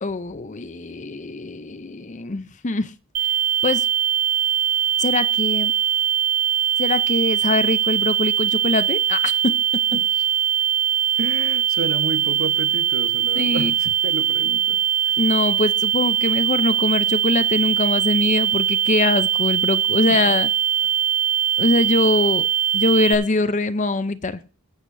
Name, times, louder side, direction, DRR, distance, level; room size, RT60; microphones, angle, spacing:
voice 1, 0.0-2.9 3.6-3.9 5.0-5.7 6.8-9.5 13.4-13.7 15.2-20.5 21.6-22.5 22.7-24.4, left 2 dB, 35° left, 12 dB, 0.6 m, -23 dB
sound 1, 3.1-23.1, right 10 dB, 85° right, 1.4 m, -21 dB
voice 2, 9.9-10.2 11.1-15.2, right 2 dB, 60° right, 8 dB, 1.2 m, -31 dB
21.0 x 8.2 x 2.7 m, 0.36 s
head